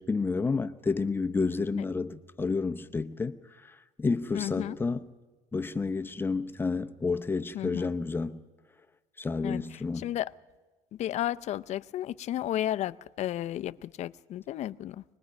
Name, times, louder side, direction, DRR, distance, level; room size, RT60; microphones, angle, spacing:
voice 1, 0.0-3.4 3.7-5.1 5.5-8.4 9.2-10.1, left 4 dB, 15° left, 0.8 m, -30 dB
voice 2, 4.3-4.8 7.5-7.9 9.4-9.6 10.0-10.3 11.0-15.0, left 12 dB, 55° left, 0.5 m, -33 dB
25.0 x 20.0 x 5.3 m
cardioid pair, 130°, 14 cm